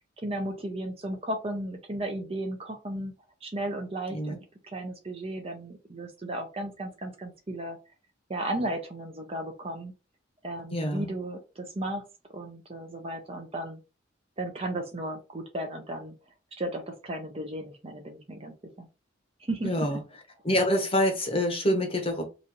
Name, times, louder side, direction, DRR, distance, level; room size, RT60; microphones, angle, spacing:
voice 1, 0.2-3.1 3.4-7.8 8.3-9.9 10.4-12.1 12.3-13.8 14.4-16.1 16.5-18.9 19.5-19.9, right 1 dB, 30° right, 4 dB, 0.7 m, -35 dB
voice 2, 10.7-11.1 19.6-20.0 20.4-22.3, equal, 30° left, 3 dB, 0.9 m, -26 dB
3.0 x 2.7 x 3.7 m, 0.29 s
head